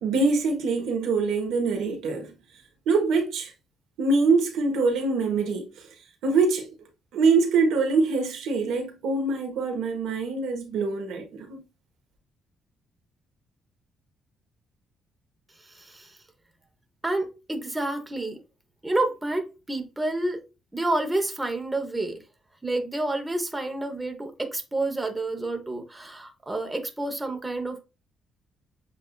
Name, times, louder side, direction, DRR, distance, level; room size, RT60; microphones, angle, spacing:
voice 1, 0.0-2.3 2.9-3.5 4.0-5.7 6.2-6.7 7.1-11.6, right 4 dB, 85° right, 1.3 m, -24 dB
voice 2, 15.6-16.2 17.0-18.4 18.8-20.4 20.7-22.2 22.6-27.8, right 2 dB, 15° right, 1.0 m, -29 dB
7.4 x 2.7 x 2.4 m
cardioid pair, 90°, 0 cm